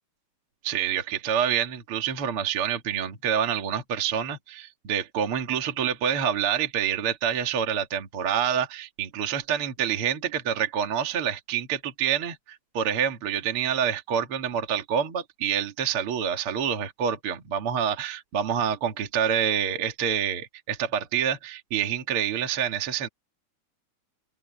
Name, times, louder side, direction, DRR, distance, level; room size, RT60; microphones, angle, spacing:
voice 1, 0.6-23.1, right 8 dB, 45° right, 1.8 m, -27 dB
open air
omnidirectional pair, 5.2 m